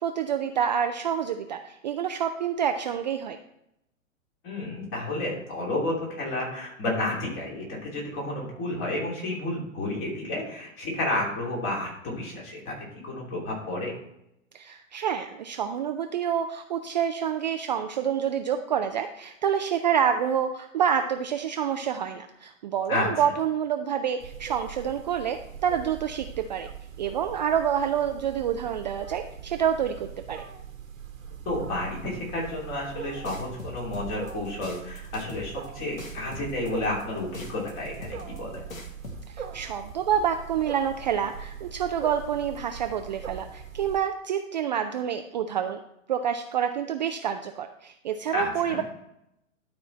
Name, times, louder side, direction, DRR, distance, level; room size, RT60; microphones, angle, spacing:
voice 1, 0.0-3.4 14.5-26.7 27.0-30.4 39.3-45.8 46.1-48.8, right 8 dB, 35° right, 6 dB, 0.4 m, -28 dB
voice 2, 4.4-14.0 22.9-23.1 31.4-38.6 48.3-48.8, left 2 dB, 30° left, -3 dB, 3.0 m, -31 dB
Wild animals, 24.2-44.0, right 7 dB, 75° right, 1.2 m, -41 dB
sound 1, 33.3-39.3, left 2 dB, 75° left, 1.5 m, -41 dB
11.5 x 4.3 x 4.1 m, 0.81 s
figure-of-eight pair, 110°, 40 cm